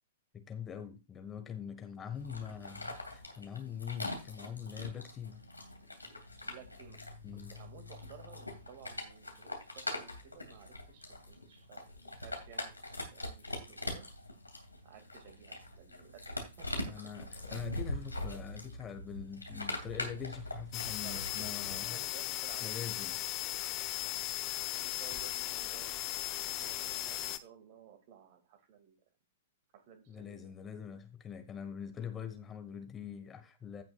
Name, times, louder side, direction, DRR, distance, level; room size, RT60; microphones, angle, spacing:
voice 1, 0.3-5.4 7.2-7.5 16.9-22.0 22.6-23.2 30.1-33.8, left 8 dB, 20° left, 1.4 m, -43 dB
sound 1, 2.1-21.9, left 1 dB, 85° left, 2.6 m, -43 dB
voice 2, 6.4-7.0 7.3-12.7 13.1-14.1 14.8-16.2 16.6-17.3 21.0-22.9 24.5-29.0 29.7-30.6, right 7 dB, 45° right, 2.3 m, -55 dB
sound 2, 20.7-27.4, left 15 dB, 35° left, 0.8 m, -37 dB
16.0 x 6.1 x 2.4 m
figure-of-eight pair, 105°, 0 cm